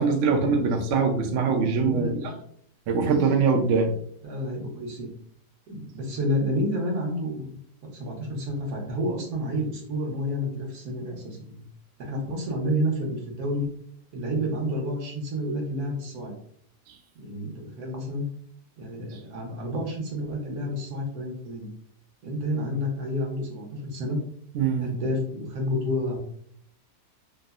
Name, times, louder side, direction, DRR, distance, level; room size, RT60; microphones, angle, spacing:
voice 1, 0.0-2.1 2.9-3.9 16.9-17.0 24.5-24.9, right 5 dB, 85° right, 3 dB, 0.6 m, -22 dB
voice 2, 1.8-2.3 4.2-5.1 5.7-7.6 7.8-11.6 12.0-13.7 14.1-16.3 17.1-18.2 18.8-21.7 22.2-24.2 24.8-26.2, equal, 65° right, -1 dB, 1.2 m, -30 dB
3.4 x 2.0 x 2.3 m, 0.64 s
omnidirectional pair, 1.8 m